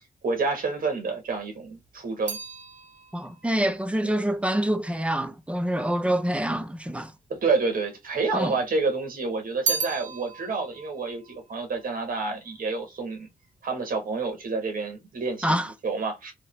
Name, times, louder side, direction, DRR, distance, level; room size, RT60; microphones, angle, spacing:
voice 1, 0.2-2.4 4.0-4.1 7.3-13.3 13.6-15.5 15.8-16.3, right 4 dB, 70° right, 1.5 m, -28 dB
sound 1, 1.3-5.7 6.5-7.3 7.6-8.7 9.1-12.6 12.9-13.4, right 4 dB, 50° right, 0.9 m, -36 dB
voice 2, 3.1-7.1 8.3-8.5 15.4-15.7, right 1 dB, 10° right, 0.5 m, -26 dB
2.9 x 2.9 x 3.1 m
cardioid pair, 90°, 15 cm